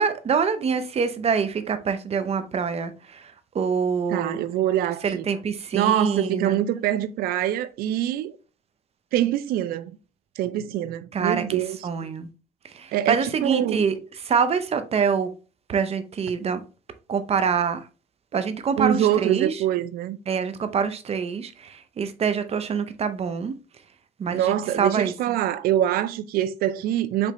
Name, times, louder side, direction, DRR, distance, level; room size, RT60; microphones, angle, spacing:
voice 1, 0.0-4.4 5.0-6.6 11.1-12.3 12.6-15.3 15.7-16.6 17.1-17.8 18.3-19.6 20.3-23.5 24.2-25.3, right 6 dB, 40° right, 0.7 m, -25 dB
voice 2, 4.1-5.2 5.7-8.4 9.1-9.9 10.4-11.8 12.9-13.8 18.8-20.2 24.3-27.3, right 12 dB, 75° right, 0.4 m, -24 dB
5.1 x 3.2 x 2.9 m
cardioid pair, 85°, 15 cm